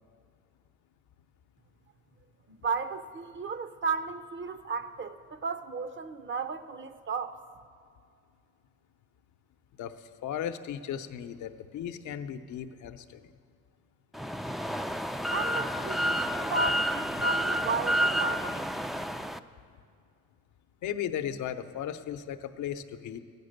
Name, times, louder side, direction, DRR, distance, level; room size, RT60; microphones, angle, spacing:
voice 1, 2.5-7.4 15.3-18.7, right 4 dB, 40° right, 0.7 m, -34 dB
voice 2, 10.2-13.2 20.8-23.2, left 9 dB, 75° left, 0.7 m, -36 dB
sound 1, 14.1-19.4, equal, ahead, 0.3 m, -30 dB
13.5 x 9.5 x 6.6 m
cardioid pair, 90°, 30 cm